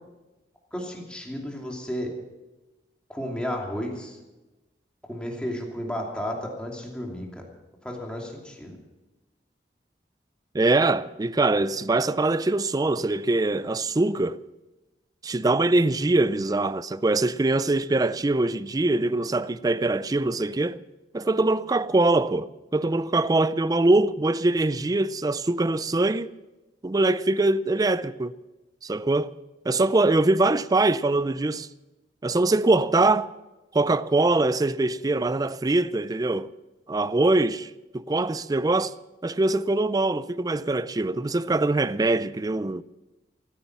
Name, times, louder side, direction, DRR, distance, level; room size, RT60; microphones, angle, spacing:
voice 1, 0.7-2.1 3.1-4.2 5.1-7.4 7.8-8.8, equal, 5° left, 2.7 m, -33 dB
voice 2, 10.5-14.4 15.2-20.8 21.1-26.3 26.8-28.3 28.8-29.3 29.7-31.7 32.2-33.3 33.7-36.5 36.9-38.9 39.2-42.8, right 2 dB, 20° right, 0.4 m, -23 dB
15.0 x 14.5 x 6.0 m
head